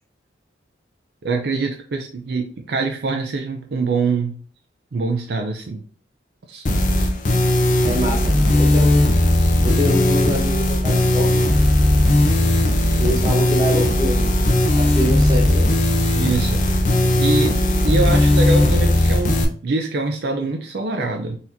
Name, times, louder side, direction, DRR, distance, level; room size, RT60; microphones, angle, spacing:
voice 1, 1.2-4.4 4.9-5.8 6.5-6.7 16.2-16.8 17.2-17.6 17.8-19.4 19.6-21.4, right 3 dB, 60° right, 3 dB, 0.4 m, -24 dB
sound 1, 6.7-19.5, left 1 dB, 40° left, 0.5 m, -17 dB
voice 2, 7.8-9.0 9.6-11.4 13.0-14.3 14.7-15.7, equal, 20° right, -2 dB, 1.0 m, -25 dB
4.0 x 2.9 x 2.6 m, 0.42 s
head